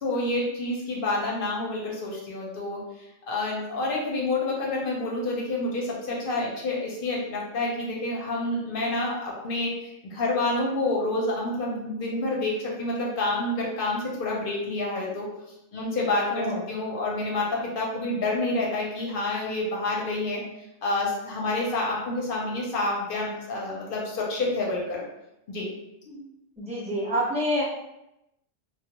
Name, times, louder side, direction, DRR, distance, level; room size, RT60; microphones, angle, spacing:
voice 1, 0.0-2.8 3.3-15.3 15.7-20.4 20.8-25.0 25.5-25.7 26.1-26.2, left 2 dB, 60° left, -3 dB, 0.7 m, -28 dB
voice 2, 16.3-16.6 26.6-27.6, equal, 5° right, -9 dB, 0.6 m, -27 dB
2.2 x 2.1 x 2.8 m, 0.88 s
omnidirectional pair, 1.2 m